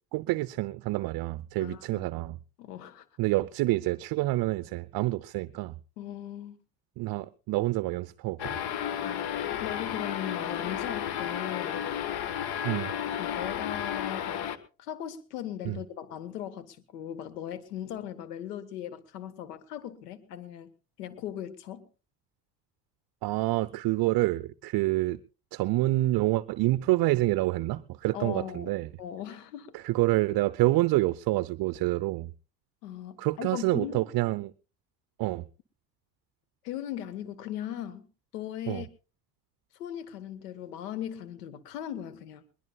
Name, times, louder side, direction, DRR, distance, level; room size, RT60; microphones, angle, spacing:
voice 1, 0.1-2.4 3.2-5.7 7.0-8.6 12.6-12.9 15.6-15.8 23.2-25.2 25.5-28.9 29.7-32.3 33.2-34.5 35.2-35.4 38.7-38.8, right 18 dB, 50° right, 0.6 m, -27 dB
voice 2, 1.6-2.1 2.6-3.0 6.0-6.6 9.0-9.2 9.6-11.9 13.2-14.4 14.8-20.7 21.0-21.8 28.1-29.7 32.8-34.0 36.6-38.0 38.3-38.9 39.8-42.4, left 10 dB, 85° left, 1.4 m, -38 dB
sound 1, 8.4-14.6, left 9 dB, 55° left, 1.3 m, -32 dB
21.5 x 20.5 x 2.3 m
hypercardioid pair, 65°, 46 cm